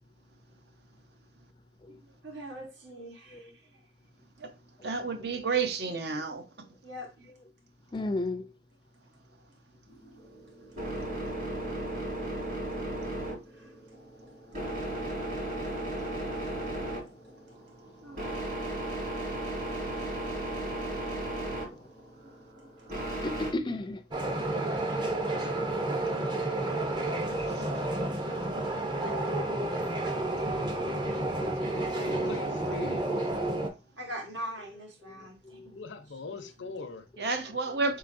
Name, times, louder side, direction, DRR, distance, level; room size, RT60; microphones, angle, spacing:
voice 1, 1.9-3.8 6.8-7.3 10.7-10.9 13.5-13.8 17.4-17.5 18.0-18.7 22.2-22.9 29.6-29.7 30.3-30.5 32.2-32.6 33.9-35.8 36.1-36.3, equal, 80° right, 1.4 m, -45 dB
voice 2, 4.8-6.4 16.3-16.4 27.6-27.7 37.2-38.0, right 4 dB, 60° right, 0.6 m, -31 dB
voice 3, 7.9-8.5 23.2-24.0 29.0-29.4 35.6-35.7, left 2 dB, 25° left, 0.4 m, -35 dB
sound 1, 9.9-23.5, right 1 dB, 45° right, 2.4 m, -36 dB
sound 2, 24.1-33.7, right 2 dB, 25° right, 0.6 m, -30 dB
voice 4, 31.6-33.3 35.8-37.0, left 4 dB, 85° left, 0.7 m, -41 dB
4.0 x 3.9 x 2.5 m
head